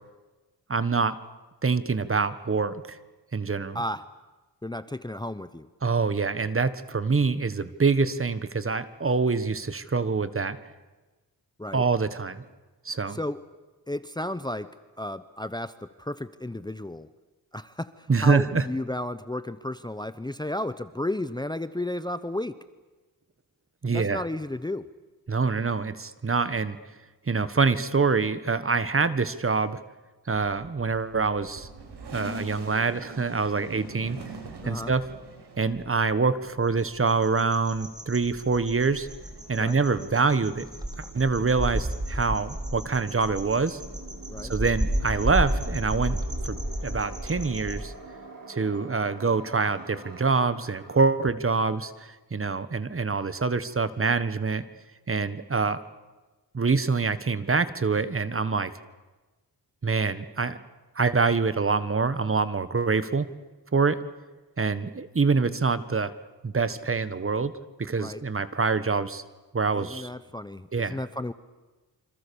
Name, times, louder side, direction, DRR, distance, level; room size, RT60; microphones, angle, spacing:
voice 1, 0.7-1.2 1.6-3.0 3.3-3.8 5.8-10.6 11.7-12.4 12.8-13.2 18.1-18.6 23.8-24.2 25.3-26.8 27.3-29.8 30.3-31.7 32.1-34.2 34.6-35.0 35.6-39.1 39.5-40.7 41.1-43.8 44.5-46.2 46.4-46.6 46.8-47.9 48.5-54.6 55.1-55.8 56.5-58.7 59.8-60.6 60.9-63.3 63.7-64.0 64.6-66.1 66.4-67.5 67.8-69.2 69.5-70.1 70.7-71.0, right 4 dB, 35° right, 13 dB, 1.5 m, -25 dB
voice 2, 3.7-4.1 4.6-5.7 11.6-11.9 13.1-13.5 13.9-17.1 17.5-22.6 23.9-24.9 34.6-34.9 39.6-39.8 44.3-44.5 68.0-68.2 69.7-71.3, left 1 dB, 10° left, 13 dB, 0.8 m, -33 dB
sound 1, 30.3-37.2 37.6-39.6, right 3 dB, 85° right, 5.1 m, -44 dB
sound 2, 36.5-51.0, right 4 dB, 55° right, 5.8 m, -48 dB
sound 3, 36.8-47.8, equal, 10° right, 4.1 m, -32 dB
28.0 x 26.5 x 7.1 m, 1.2 s
wide cardioid pair, 95°, 40 cm